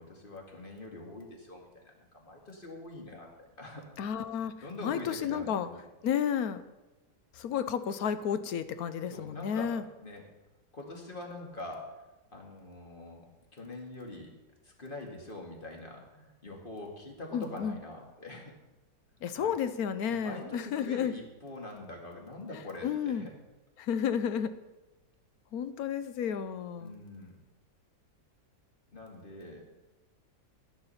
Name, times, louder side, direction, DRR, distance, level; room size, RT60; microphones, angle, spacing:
voice 1, 0.0-3.8 4.6-5.8 9.1-10.2 10.7-11.9 12.3-13.3 13.5-14.3 14.6-18.5 19.3-19.5 20.0-23.3 26.8-27.3 28.9-29.7, left 2 dB, 30° left, 0 dB, 2.3 m, -44 dB
voice 2, 4.0-4.5 4.8-5.7 6.0-6.6 7.3-9.8 17.3-17.8 19.2-21.1 22.8-23.3 23.8-24.5 25.5-26.9, left 8 dB, 65° left, 12 dB, 1.1 m, -32 dB
11.5 x 11.0 x 5.6 m, 1.1 s
omnidirectional pair, 1.9 m